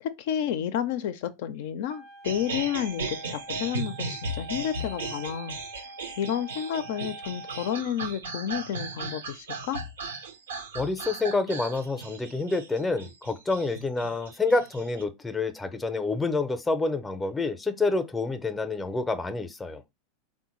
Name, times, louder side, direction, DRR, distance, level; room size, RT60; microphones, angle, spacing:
voice 1, 0.0-5.6 6.2-9.8, left 9 dB, 65° left, 0.4 m, -31 dB
Wind instrument woodwind instrument, 1.9-7.8, right 2 dB, 40° right, 0.4 m, -45 dB
sound 1, 2.2-15.0, right 3 dB, 85° right, 0.6 m, -36 dB
voice 2, 10.7-19.8, left 3 dB, 10° left, 0.5 m, -28 dB
3.5 x 2.1 x 3.0 m
hypercardioid pair, 100°, 0 cm